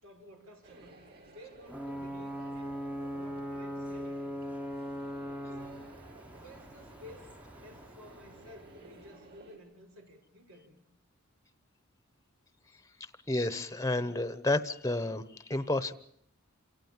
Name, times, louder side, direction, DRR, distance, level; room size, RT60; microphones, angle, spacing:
voice 1, 0.0-2.8 3.1-4.2 5.5-6.0 6.3-10.8, equal, 85° right, 2 dB, 6.0 m, -53 dB
sound 1, 0.6-9.6, right 3 dB, 50° right, 7.4 m, -55 dB
Ocean / Boat Water vehicle / Alarm, 1.7-9.2, equal, 5° right, 1.0 m, -41 dB
voice 2, 13.3-15.2 15.5-15.9, left 2 dB, 15° left, 13 dB, 1.0 m, -30 dB
28.0 x 17.5 x 7.4 m, 0.65 s
head